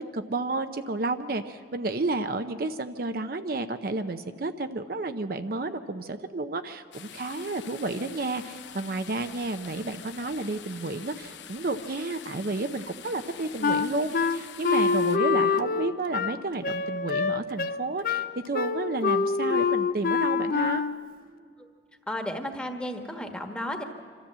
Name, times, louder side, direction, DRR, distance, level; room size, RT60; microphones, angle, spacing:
voice 1, 0.0-20.8, right 2 dB, 55° right, 8 dB, 0.6 m, -31 dB
sound 1, 6.9-15.2, left 9 dB, 85° left, 0.8 m, -45 dB
Wind instrument woodwind instrument, 13.6-21.1, left 5 dB, 50° left, 0.5 m, -26 dB
voice 2, 22.1-23.8, left 1 dB, 5° left, 4 dB, 1.3 m, -33 dB
26.0 x 13.5 x 7.5 m, 2.1 s
head